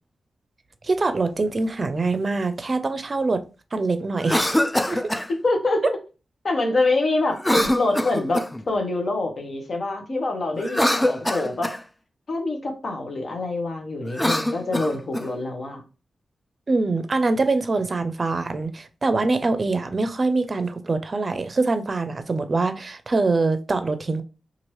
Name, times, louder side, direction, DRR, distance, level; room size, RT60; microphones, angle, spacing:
voice 1, 0.8-3.4 3.7-4.6 4.9-5.0 16.7-24.2, right 3 dB, 45° right, 0.4 m, -24 dB
Cough, 4.2-5.3 7.4-8.6 10.6-11.8 14.0-15.3, left 1 dB, 15° left, 0.4 m, -24 dB
voice 2, 5.3-5.8 6.4-11.7 12.3-15.8, left 2 dB, 65° left, 0.8 m, -25 dB
2.8 x 2.5 x 3.1 m
cardioid pair, 50°, 0 cm